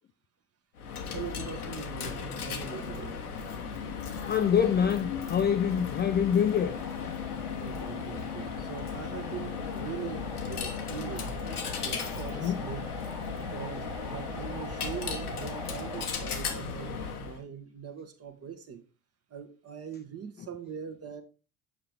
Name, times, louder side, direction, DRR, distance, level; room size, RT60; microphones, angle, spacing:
Coin (dropping), 0.8-17.4, left 6 dB, 85° left, 0.9 m, -36 dB
voice 1, 1.1-3.2 7.6-11.3 11.8-13.1 13.3-18.8 19.3-21.2, right 8 dB, 35° right, 1.3 m, -42 dB
voice 2, 4.3-6.8 12.3-12.6, left 8 dB, 25° left, 0.4 m, -25 dB
Evolving delay feedback loop, 6.5-16.1, right 1 dB, 10° right, 1.2 m, -44 dB
7.4 x 4.9 x 3.3 m
figure-of-eight pair, 55°, 44 cm